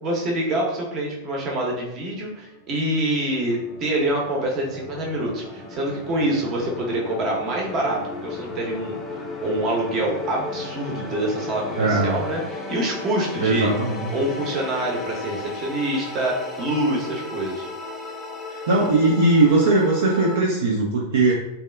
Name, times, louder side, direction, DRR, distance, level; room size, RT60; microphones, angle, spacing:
voice 1, 0.0-9.0 9.4-13.7 14.1-17.7, right 1 dB, 35° right, -1 dB, 0.8 m, -26 dB
sound 1, 2.0-20.4, left 3 dB, 20° left, 0.5 m, -35 dB
voice 2, 11.8-12.2 13.4-14.1 18.5-21.3, right 2 dB, 60° right, -2 dB, 0.4 m, -19 dB
3.4 x 2.3 x 2.2 m, 0.93 s
figure-of-eight pair, 90°, 0 cm